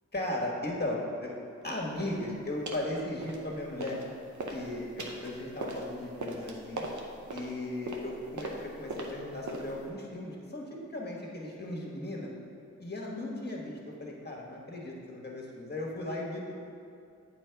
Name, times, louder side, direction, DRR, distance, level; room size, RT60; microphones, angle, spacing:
voice 1, 0.1-1.4 1.6-4.0 4.5-6.8 7.3-12.3 12.8-16.5, left 1 dB, 35° left, -2 dB, 1.4 m, -36 dB
sound 1, 2.0-2.2 2.7-2.9 3.2-4.1 4.3-9.9, right 2 dB, 85° right, 0.8 m, -39 dB
8.2 x 4.4 x 4.6 m, 2.4 s
wide cardioid pair, 60°, 29 cm